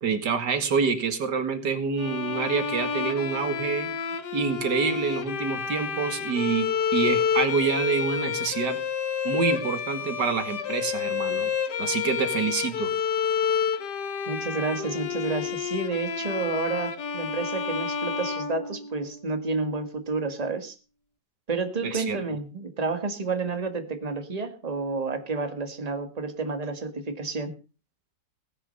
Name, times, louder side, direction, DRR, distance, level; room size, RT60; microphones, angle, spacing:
voice 1, 0.0-3.9 4.3-8.8 9.2-11.5 11.8-12.9 21.8-22.2, right 5 dB, 70° right, 9 dB, 2.5 m, -27 dB
Bowed string instrument, 2.0-19.2, left 7 dB, 65° left, 1.9 m, -29 dB
voice 2, 14.3-20.8 21.5-27.5, right 3 dB, 20° right, 8 dB, 1.8 m, -30 dB
17.5 x 10.0 x 5.4 m, 0.34 s
omnidirectional pair, 1.9 m